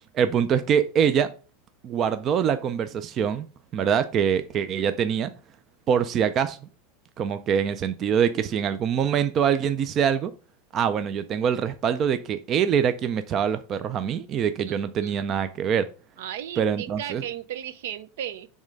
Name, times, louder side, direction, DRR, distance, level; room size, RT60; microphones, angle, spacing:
voice 1, 0.1-1.3 1.8-3.5 3.7-5.3 5.9-6.6 7.2-10.3 10.7-15.9 16.6-17.2, right 8 dB, 25° right, 0.3 m, -24 dB
voice 2, 14.7-15.1 16.2-18.5, right 10 dB, 65° right, 0.6 m, -35 dB
7.1 x 3.2 x 5.1 m
supercardioid pair, 175°, 0 cm